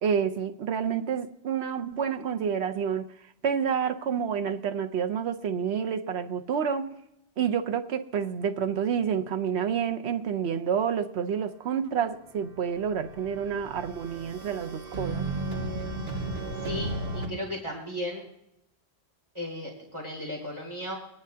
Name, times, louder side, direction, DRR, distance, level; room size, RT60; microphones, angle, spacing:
voice 1, 0.0-3.1 3.4-7.0 7.4-15.3, right 7 dB, 85° right, 1.0 m, -29 dB
sound 1, 12.5-17.3, right 2 dB, 55° right, 2.3 m, -34 dB
voice 2, 16.6-18.2 19.3-20.9, left 1 dB, 25° right, 2.6 m, -35 dB
22.0 x 10.0 x 2.8 m
omnidirectional pair, 1.1 m